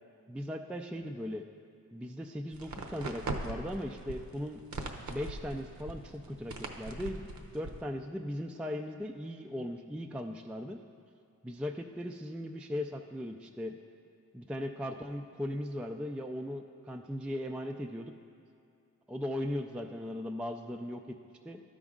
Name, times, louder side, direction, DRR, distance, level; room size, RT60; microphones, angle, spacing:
voice 1, 0.3-1.5 1.9-4.6 5.1-10.8 11.4-13.8 14.3-18.1 19.1-21.0 21.5-21.6, left 1 dB, 5° right, 4 dB, 0.3 m, -38 dB
sound 1, 2.5-7.8, right 2 dB, 60° right, 0.9 m, -41 dB
12.0 x 5.1 x 3.7 m, 2.5 s
cardioid pair, 60°, 33 cm